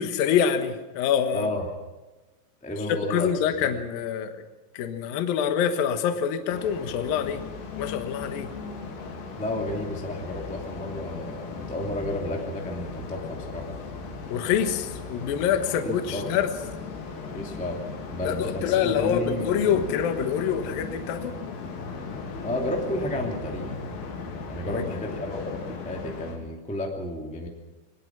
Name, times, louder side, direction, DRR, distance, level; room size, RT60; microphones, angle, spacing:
voice 1, 0.0-1.5 2.9-4.3 4.7-7.4 7.8-8.5 14.3-16.5 18.2-21.4 24.6-24.9, left 8 dB, 65° left, 7 dB, 2.5 m, -26 dB
voice 2, 1.3-1.7 2.6-3.3 9.4-13.7 15.8-16.3 17.2-17.8 18.1-19.6 22.4-23.8 24.5-27.5, left 1 dB, 5° left, 0 dB, 0.6 m, -32 dB
sound 1, 6.5-26.4, left 4 dB, 85° left, 5.5 m, -37 dB
22.5 x 19.5 x 6.1 m, 1.2 s
omnidirectional pair, 5.7 m